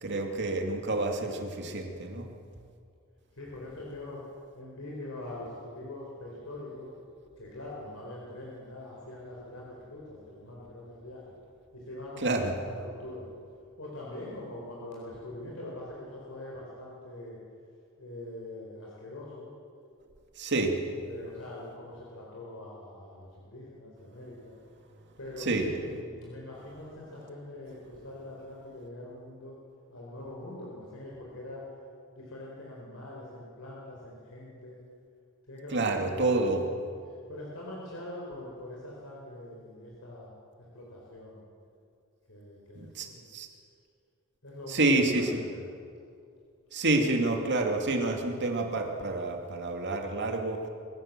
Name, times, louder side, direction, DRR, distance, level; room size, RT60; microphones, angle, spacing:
voice 1, 0.0-2.3 12.2-12.5 20.4-20.8 25.4-25.7 35.7-36.6 42.7-43.5 44.7-45.4 46.7-50.6, right 2 dB, 55° right, 3 dB, 2.5 m, -28 dB
voice 2, 3.3-4.2 4.5-6.9 7.4-11.3 11.7-13.3 13.8-17.4 18.0-19.5 21.0-24.5 25.2-29.6 29.9-31.6 32.1-34.8 35.5-36.6 37.1-40.3 40.6-41.4 42.3-43.2 44.4-45.7, left 1 dB, 70° left, -4 dB, 4.5 m, -43 dB
26.0 x 15.0 x 7.5 m, 2.4 s
head